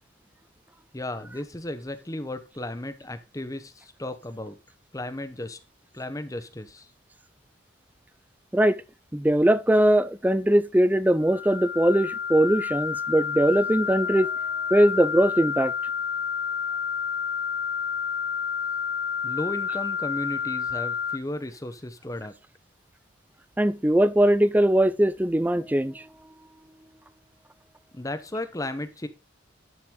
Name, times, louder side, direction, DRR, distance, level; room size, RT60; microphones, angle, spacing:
voice 1, 0.9-4.6 4.9-5.6 5.9-6.9 19.2-22.3 27.9-29.1, left 1 dB, 15° left, 0.9 m, -34 dB
voice 2, 9.1-14.3 14.7-15.7 23.6-26.0, right 1 dB, 10° right, 0.4 m, -21 dB
sound 1, 11.2-21.2, left 7 dB, 60° left, 0.8 m, -30 dB
10.5 x 5.9 x 3.7 m
head